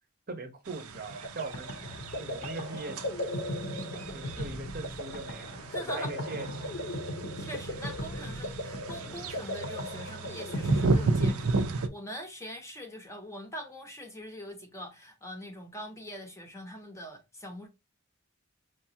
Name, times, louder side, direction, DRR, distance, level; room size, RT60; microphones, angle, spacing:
voice 1, 0.3-1.7 2.2-3.0 3.3-3.4 3.9-6.6, right 3 dB, 45° right, 0.7 m, -41 dB
sound 1, 0.7-11.9, right 3 dB, 85° right, 0.5 m, -34 dB
sound 2, 0.9-11.8, left 1 dB, 55° left, 0.8 m, -37 dB
voice 2, 5.7-6.1 7.4-17.7, equal, 15° left, 0.7 m, -43 dB
4.9 x 2.3 x 2.7 m
head